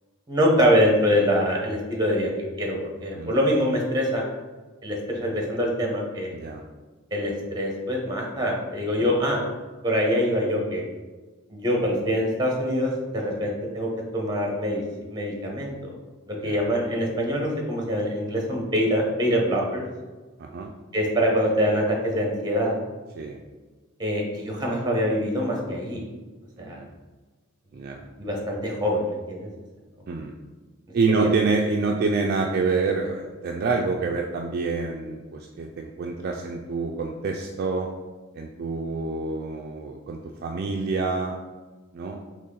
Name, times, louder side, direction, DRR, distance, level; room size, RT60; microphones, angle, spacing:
voice 1, 0.3-2.3 2.6-4.2 4.8-6.3 7.1-9.4 9.8-10.8 11.5-14.8 15.1-15.7 16.3-19.8 20.9-22.8 24.0-26.1 26.6-26.8 28.2-29.5 31.1-31.3, equal, 20° right, -1 dB, 0.9 m, -24 dB
voice 2, 20.4-20.7 23.1-23.4 26.6-26.9 27.7-28.0 30.1-30.3 30.9-37.9 38.3-41.4 41.9-42.2, right 4 dB, 45° right, 1 dB, 0.3 m, -27 dB
4.1 x 3.0 x 3.8 m, 1.3 s
head